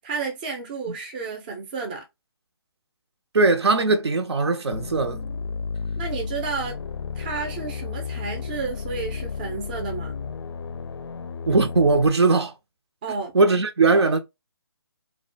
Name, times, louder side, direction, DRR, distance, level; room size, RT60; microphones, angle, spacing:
voice 1, 0.0-2.0 6.0-6.8 7.2-10.2 13.0-13.3, right 5 dB, 20° right, 0.5 m, -31 dB
voice 2, 3.3-5.2 11.5-12.5 13.3-14.2, right 3 dB, 75° right, 0.6 m, -19 dB
sound 1, 4.7-12.1, left 5 dB, 70° left, 0.4 m, -33 dB
2.3 x 2.2 x 2.5 m
figure-of-eight pair, 155°, 14 cm